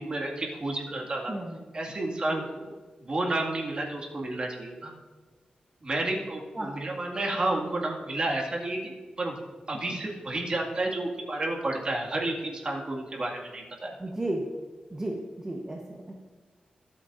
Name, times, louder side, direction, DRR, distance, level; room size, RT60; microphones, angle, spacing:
voice 1, 0.0-1.3 1.7-2.7 3.0-4.9 5.8-9.4 9.7-13.9, right 2 dB, 40° right, 0 dB, 2.2 m, -31 dB
voice 2, 1.3-1.6 2.3-2.4 6.5-6.7 14.0-14.4 14.9-16.1, right 1 dB, 20° right, -1 dB, 1.1 m, -34 dB
22.5 x 8.8 x 2.6 m, 1.4 s
wide cardioid pair, 140°, 3 cm